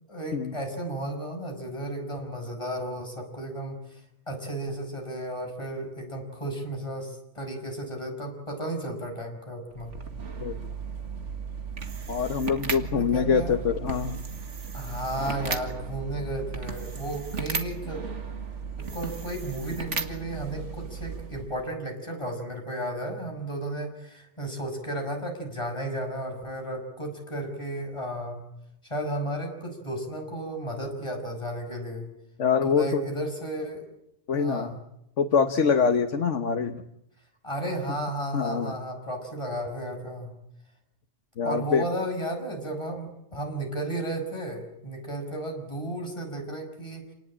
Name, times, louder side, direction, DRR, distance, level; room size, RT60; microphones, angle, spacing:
voice 1, 0.1-4.0 4.3-9.9 12.9-13.6 14.7-18.0 18.8-28.4 28.9-32.1 32.6-33.9 34.3-34.8 37.4-40.3 41.4-47.0, right 1 dB, 25° left, 3 dB, 6.0 m, -33 dB
sound 1, 9.7-21.7, right 5 dB, 80° right, 2.2 m, -35 dB
voice 2, 12.1-14.3 32.4-33.0 34.3-34.7 35.2-36.8 38.3-38.7 41.4-41.8, left 6 dB, 90° left, 7 dB, 1.5 m, -24 dB
28.5 x 19.5 x 8.8 m, 0.79 s
omnidirectional pair, 1.2 m